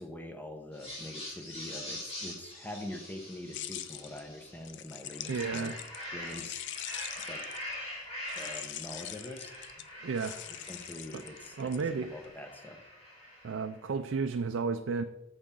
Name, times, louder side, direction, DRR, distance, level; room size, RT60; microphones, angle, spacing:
voice 1, 0.0-5.8 6.1-6.6 7.3-7.4 8.3-9.5 10.7-12.8, left 1 dB, 10° left, 4 dB, 0.9 m, -44 dB
sound 1, 0.7-4.6 5.0-13.7, left 1 dB, 30° left, 2.9 m, -44 dB
sound 2, 3.5-7.8 8.3-12.3, left 11 dB, 55° left, 0.5 m, -43 dB
voice 2, 5.3-5.8 10.0-10.4 11.1-11.2 11.6-12.1 13.4-15.0, right 5 dB, 60° right, 7 dB, 0.4 m, -32 dB
8.6 x 7.1 x 3.8 m, 0.94 s
head